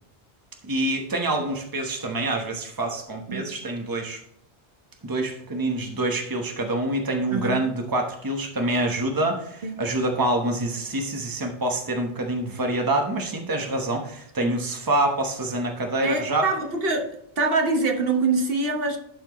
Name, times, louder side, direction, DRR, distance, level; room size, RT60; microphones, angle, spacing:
voice 1, 0.6-4.2 5.0-16.5, right 1 dB, 20° right, 3 dB, 1.0 m, -26 dB
voice 2, 7.3-7.6 9.6-9.8 14.4-14.5 16.0-17.1 17.4-19.0, right 3 dB, 65° right, 3 dB, 1.2 m, -24 dB
12.0 x 4.4 x 3.0 m, 0.75 s
omnidirectional pair, 1.0 m